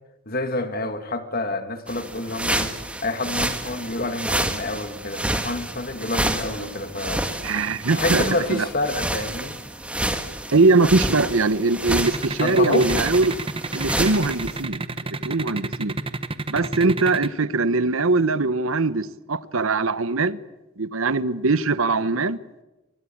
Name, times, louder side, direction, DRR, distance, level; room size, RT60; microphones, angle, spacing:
voice 1, 0.3-2.7 3.0-7.3 7.9-9.6 12.4-12.8, left 2 dB, 45° left, 2.0 m, -28 dB
sound 1, 1.9-14.6, right 1 dB, 5° right, 1.8 m, -29 dB
voice 2, 7.4-8.2 8.5-8.7 10.5-13.3 13.7-15.9 16.5-20.4 20.8-22.4, right 3 dB, 80° right, 1.0 m, -21 dB
sound 2, 12.0-17.3, right 3 dB, 25° right, 1.0 m, -29 dB
24.5 x 22.5 x 8.6 m
head